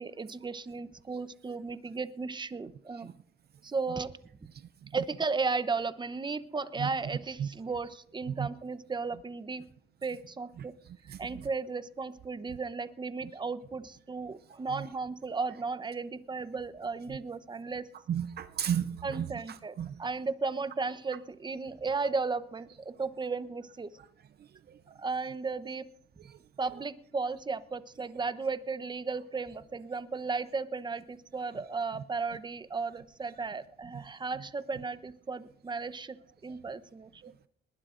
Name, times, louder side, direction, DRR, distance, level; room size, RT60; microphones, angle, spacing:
voice 1, 0.0-3.1 3.6-4.1 4.9-9.6 10.0-10.7 11.2-17.9 19.0-24.0 25.0-25.9 26.6-36.2 36.4-37.2, right 4 dB, 20° right, 13 dB, 0.8 m, -35 dB
voice 2, 11.1-11.4 14.7-14.9 18.1-19.9 26.7-26.8 37.2-37.5, right 9 dB, 55° right, 12 dB, 0.5 m, -34 dB
21.0 x 19.5 x 2.6 m, 0.70 s
cardioid pair, 90°, 20 cm